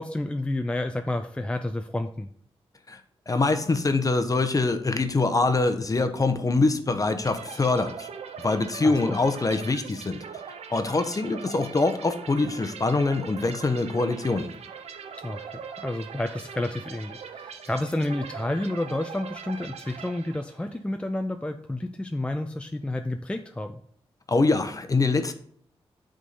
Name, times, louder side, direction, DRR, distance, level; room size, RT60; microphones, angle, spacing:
voice 1, 0.0-2.3 8.8-9.2 15.2-23.8, left 1 dB, 10° left, 6 dB, 0.4 m, -30 dB
voice 2, 3.3-8.1 8.4-10.2 10.7-14.5 24.3-25.3, left 3 dB, 35° left, 9 dB, 0.8 m, -24 dB
sound 1, 7.2-20.8, right 6 dB, 90° right, 0.6 m, -41 dB
8.3 x 3.7 x 4.0 m, 0.62 s
cardioid pair, 70°, 11 cm